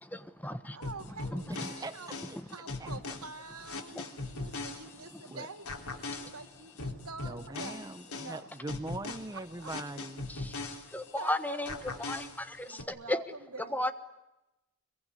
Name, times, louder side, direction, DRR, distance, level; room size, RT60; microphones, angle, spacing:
voice 1, 0.0-0.8 1.3-1.7 2.9-3.0 3.9-4.1 4.4-4.5 5.1-5.4 10.3-10.5 10.9-13.2 13.6-13.9, left 1 dB, 5° left, 11 dB, 1.2 m, -35 dB
voice 2, 0.7-2.1 2.5-5.7 6.1-7.8 8.2-8.5 9.3-9.7 11.2-11.9 12.7-13.2 13.5-13.9, right 4 dB, 85° right, 6 dB, 2.7 m, -46 dB
sound 1, 0.8-5.3 5.7-11.3 11.7-12.8, left 3 dB, 80° left, 3.3 m, -40 dB
voice 3, 1.5-2.4 2.8-3.2 5.3-5.5 7.2-10.3, right 2 dB, 15° right, 9 dB, 0.9 m, -42 dB
24.5 x 23.0 x 9.8 m, 0.97 s
head